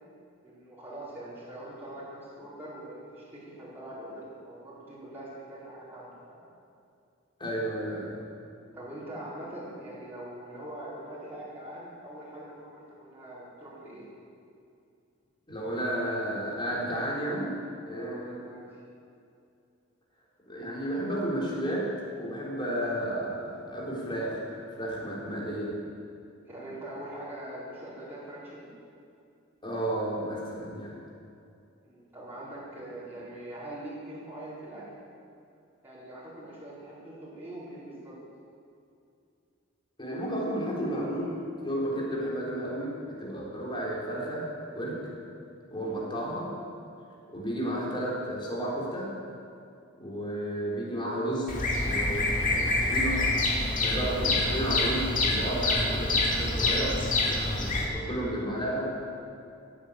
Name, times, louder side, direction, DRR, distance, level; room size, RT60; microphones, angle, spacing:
voice 1, 0.4-6.4 8.7-14.1 17.9-18.8 26.5-28.7 31.8-34.8 35.8-38.1, right 1 dB, 10° right, -10 dB, 4.8 m, -43 dB
voice 2, 7.4-8.2 15.5-17.6 17.9-18.4 20.5-21.9 22.2-25.8 29.6-31.0 40.0-45.0 45.7-46.5 47.3-49.2 50.0-53.3 53.8-58.9, right 1 dB, 25° left, -4 dB, 3.9 m, -32 dB
Bird vocalization bird call bird song, 51.5-57.8, left 2 dB, 40° left, 2.4 m, -26 dB
16.0 x 9.3 x 8.4 m, 2.5 s
head